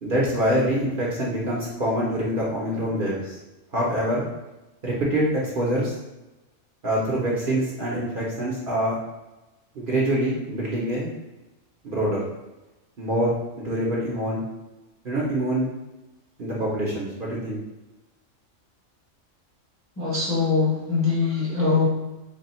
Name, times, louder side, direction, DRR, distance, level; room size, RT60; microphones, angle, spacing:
voice 1, 0.0-3.4 3.7-4.2 4.8-5.9 6.8-9.0 9.7-11.1 11.8-12.3 13.0-14.4 15.0-15.7 16.4-17.6, right 1 dB, 45° right, -5 dB, 0.8 m, -25 dB
voice 2, 20.0-21.9, left 4 dB, 15° left, -6 dB, 0.7 m, -22 dB
3.4 x 2.3 x 4.1 m, 1.1 s
omnidirectional pair, 1.4 m